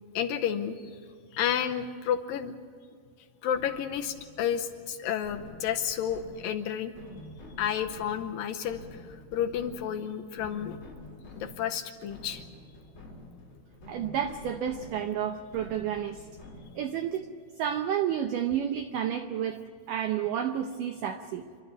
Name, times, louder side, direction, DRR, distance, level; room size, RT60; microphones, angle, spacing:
voice 1, 0.2-1.0 1.3-2.6 3.4-6.9 7.6-10.8 11.4-12.4, left 9 dB, 80° left, 5 dB, 2.1 m, -31 dB
sound 1, 3.5-17.0, left 1 dB, 30° left, 4.6 m, -48 dB
voice 2, 13.9-16.2 16.8-17.2 17.6-19.6 19.9-21.4, right 9 dB, 90° right, 7 dB, 1.8 m, -30 dB
28.0 x 12.5 x 9.4 m, 2.1 s
omnidirectional pair, 4.9 m